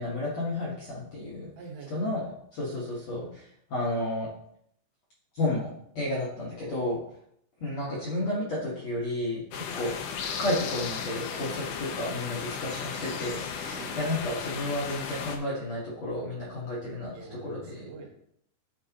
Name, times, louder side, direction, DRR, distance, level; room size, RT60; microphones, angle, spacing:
voice 1, 0.0-1.5 1.9-4.3 5.3-7.0 7.6-10.0 10.2-17.1 17.4-17.8, left 1 dB, 70° left, -6 dB, 1.5 m, -32 dB
voice 2, 1.6-2.2 8.2-9.0 13.8-14.2 17.1-18.1, right 4 dB, 80° right, 1 dB, 3.7 m, -45 dB
sound 1, 9.5-15.4, left 6 dB, 90° left, 2.1 m, -35 dB
13.0 x 5.1 x 2.9 m, 0.71 s
omnidirectional pair, 5.5 m